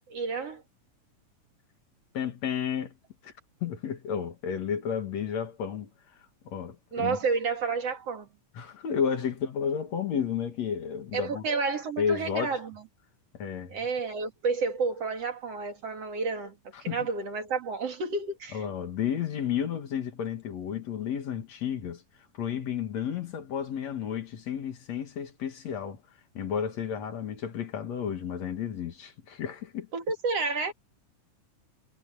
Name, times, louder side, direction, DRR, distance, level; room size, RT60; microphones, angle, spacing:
voice 1, 0.1-0.6 6.9-8.3 11.1-12.7 13.7-16.5 16.8-18.6 29.9-30.7, right 4 dB, 50° right, 3.5 m, -30 dB
voice 2, 2.1-2.9 3.2-3.3 3.6-5.9 6.5-7.2 8.5-11.4 12.0-12.6 13.3-13.8 16.7-17.1 18.5-22.0 22.4-26.0 26.3-29.9, left 8 dB, 60° left, 2.9 m, -32 dB
omnidirectional pair, 3.6 m